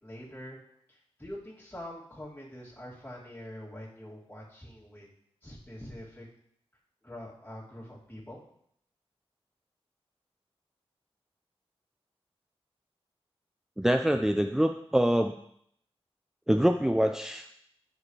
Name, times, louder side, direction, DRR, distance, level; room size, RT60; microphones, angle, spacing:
voice 1, 0.0-0.6 0.9-5.1 5.4-6.3 7.0-8.4, left 1 dB, 15° left, -7 dB, 2.6 m, -44 dB
voice 2, 13.8-15.3 16.5-17.4, equal, 5° right, 6 dB, 0.4 m, -25 dB
13.5 x 4.9 x 3.3 m, 0.69 s
wide cardioid pair, 60°, 10 cm